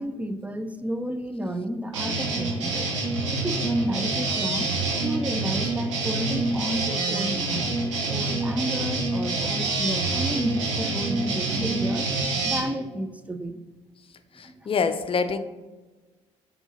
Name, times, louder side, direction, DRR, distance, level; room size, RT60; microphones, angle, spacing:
voice 1, 0.0-2.9 3.3-4.7 5.0-7.8 8.1-12.1 12.4-13.6 14.4-14.7, right 1 dB, 10° right, 10 dB, 0.5 m, -31 dB
sound 1, 1.9-12.6, right 3 dB, 90° right, 1.2 m, -26 dB
voice 2, 14.3-15.4, left 5 dB, 35° left, 10 dB, 0.6 m, -26 dB
4.5 x 3.9 x 5.6 m, 1.3 s
hypercardioid pair, 55°, 15 cm